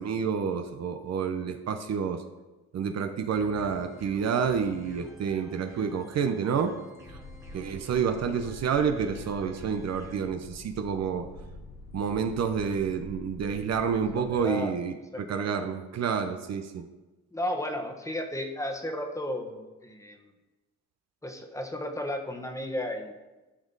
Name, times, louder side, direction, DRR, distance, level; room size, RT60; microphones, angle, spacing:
voice 1, 0.0-2.2 2.7-6.8 7.5-11.3 11.9-16.9, right 6 dB, 60° right, 7 dB, 0.8 m, -29 dB
sound 1, 3.3-10.2, equal, 10° right, 2.0 m, -50 dB
sound 2, 7.1-14.4, left 2 dB, 80° left, 1.8 m, -46 dB
voice 2, 14.2-14.7 15.1-15.4 17.3-20.3 21.2-23.1, left 1 dB, 10° left, 3 dB, 1.3 m, -34 dB
13.0 x 5.2 x 4.0 m, 1.1 s
cardioid pair, 90°, 30 cm